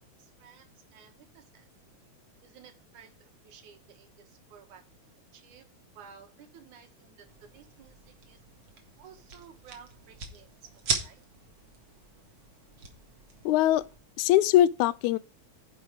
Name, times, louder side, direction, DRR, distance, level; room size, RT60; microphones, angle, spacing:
voice 1, 0.2-1.7 2.4-4.9 5.3-5.7 5.9-8.4 9.0-11.2, right 7 dB, 85° right, 3.0 m, -54 dB
sound 1, 7.3-14.0, right 4 dB, 45° right, 2.4 m, -39 dB
voice 2, 13.5-13.9 14.2-15.2, left 13 dB, 85° left, 2.0 m, -22 dB
10.5 x 5.5 x 4.7 m
omnidirectional pair, 3.3 m